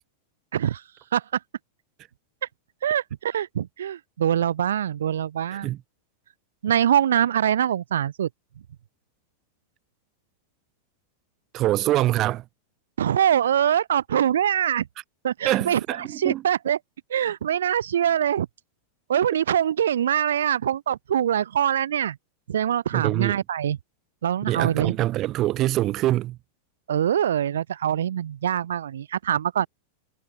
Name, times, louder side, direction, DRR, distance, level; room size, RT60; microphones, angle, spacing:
voice 1, 2.8-5.7 6.6-8.3 13.0-14.9 15.2-16.8 17.1-18.5 19.1-22.2 22.5-23.8 24.2-24.9 26.9-29.7, right 10 dB, 65° right, 3.8 m, -23 dB
voice 2, 11.5-12.4 15.4-16.4 22.9-23.3 24.5-26.4, right 15 dB, 35° right, 1.7 m, -24 dB
figure-of-eight pair, 90°, 0 cm